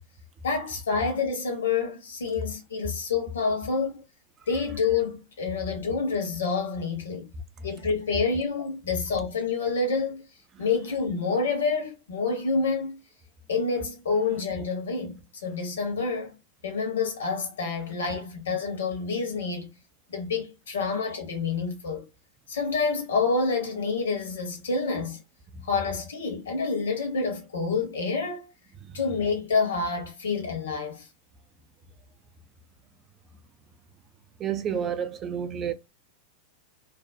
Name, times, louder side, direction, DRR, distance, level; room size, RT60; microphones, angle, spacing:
voice 1, 0.4-4.0 4.5-7.3 7.6-10.2 10.6-13.0 13.5-16.3 16.6-19.7 20.1-22.1 22.5-25.2 25.6-28.5 28.9-31.1, left 4 dB, 65° left, 0.9 m, -28 dB
voice 2, 34.4-35.7, right 8 dB, 30° right, 0.3 m, -29 dB
2.4 x 2.0 x 2.5 m
figure-of-eight pair, 90°, 0 cm